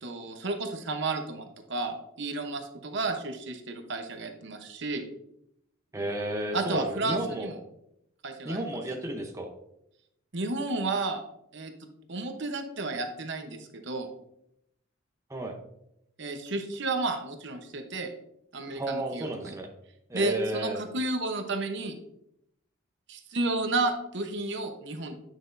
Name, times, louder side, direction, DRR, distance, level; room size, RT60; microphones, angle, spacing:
voice 1, 0.0-5.0 6.5-7.6 8.2-8.6 10.3-11.2 11.5-11.7 12.1-14.1 16.2-18.1 18.5-19.3 20.1-22.0 23.1-25.1, right 2 dB, 55° right, 5 dB, 0.8 m, -32 dB
voice 2, 5.9-7.5 8.4-9.5 15.3-15.6 18.7-19.7 20.1-20.8, right 1 dB, 15° right, 2 dB, 0.7 m, -32 dB
9.1 x 6.0 x 2.6 m, 0.78 s
head